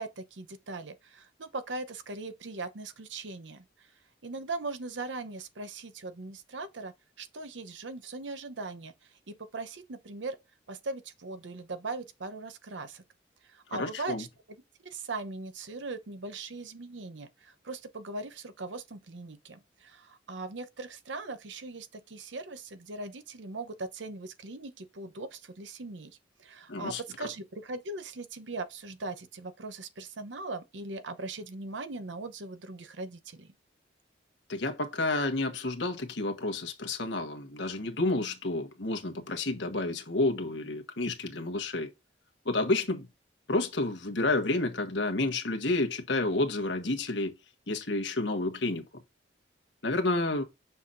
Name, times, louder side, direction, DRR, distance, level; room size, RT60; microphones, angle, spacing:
voice 1, 0.0-3.6 4.2-8.9 9.3-10.4 10.7-13.0 13.4-14.3 14.8-33.5, right 3 dB, 75° right, 0.8 m, -40 dB
voice 2, 13.7-14.2 26.7-27.0 34.5-41.9 42.4-43.1 43.5-47.4 47.7-49.0 49.8-50.4, left 2 dB, 70° left, 1.3 m, -30 dB
6.8 x 5.6 x 2.6 m
head